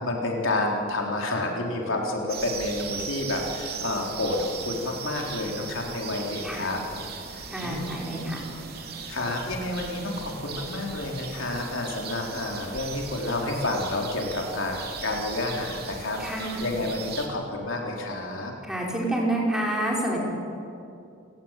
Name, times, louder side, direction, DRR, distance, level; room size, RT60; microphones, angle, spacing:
voice 1, 0.0-6.8 7.3-7.9 9.1-18.5, left 2 dB, 75° left, 0 dB, 3.9 m, -29 dB
sound 1, 2.3-17.3, right 5 dB, 50° right, 3.2 m, -38 dB
voice 2, 7.5-8.4 16.2-16.6 18.6-20.3, right 1 dB, 5° right, -3 dB, 5.3 m, -28 dB
29.5 x 18.0 x 9.1 m, 2.7 s
head